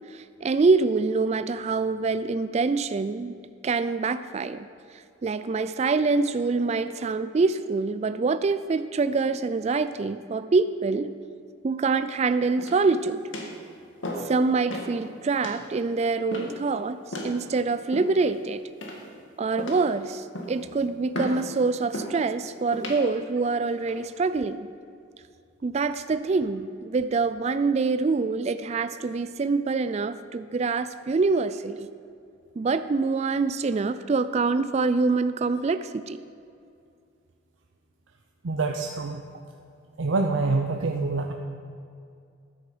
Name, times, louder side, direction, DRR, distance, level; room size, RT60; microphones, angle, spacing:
voice 1, 0.1-3.4 3.6-4.7 5.2-11.1 11.6-13.2 14.2-17.0 17.2-18.6 19.4-24.7 25.6-31.9 32.6-36.2, right 4 dB, 35° right, 12 dB, 0.3 m, -25 dB
sound 1, 12.6-12.9 13.3-13.6 14.0-14.4 14.7-14.9 15.4-15.6 16.3-16.6 17.1-17.4 17.9-18.3 18.8-19.2 19.6-19.9 20.3-20.6 21.1-21.4 21.9-22.2 22.7-23.0 23.6-24.0, left 1 dB, 75° left, 1.9 m, -34 dB
voice 2, 38.4-39.2 40.0-41.3, right 3 dB, 75° right, 3 dB, 0.7 m, -26 dB
13.0 x 9.7 x 5.0 m, 2.4 s
head